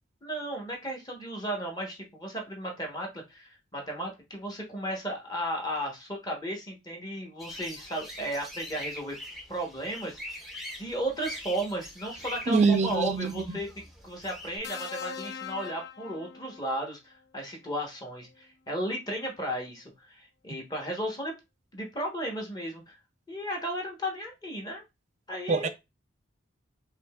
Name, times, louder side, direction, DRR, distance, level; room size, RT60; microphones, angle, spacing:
voice 1, 0.2-9.2 9.5-10.5 10.8-13.7 14.0-21.3 21.7-23.0 23.3-24.8 25.3-25.7, right 1 dB, 20° left, 1.1 m, -34 dB
sound 1, 7.4-14.6, equal, ahead, 0.7 m, -43 dB
voice 2, 12.5-13.6 25.5-25.7, right 4 dB, 35° right, 0.4 m, -24 dB
sound 2, 14.6-16.9 18.2-18.4, left 7 dB, 55° left, 0.4 m, -41 dB
5.1 x 2.8 x 2.3 m
head